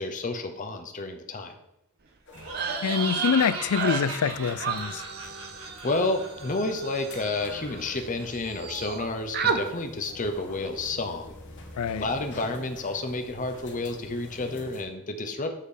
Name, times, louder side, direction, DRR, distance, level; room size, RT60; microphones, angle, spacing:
voice 1, 0.0-1.6 5.2-5.5 5.8-11.3 12.0-15.5, left 2 dB, 35° left, 0.8 m, -30 dB
sound 1, 2.3-14.8, left 2 dB, 55° left, 1.4 m, -47 dB
Laughter, 2.3-7.9, right 2 dB, 70° right, 1.7 m, -38 dB
sound 2, 2.4-8.1 8.3-9.0 9.3-9.6, right 6 dB, 45° right, 0.6 m, -33 dB
voice 2, 2.8-5.1 11.8-12.1, left 7 dB, 85° left, 0.4 m, -25 dB
7.4 x 4.3 x 5.0 m
head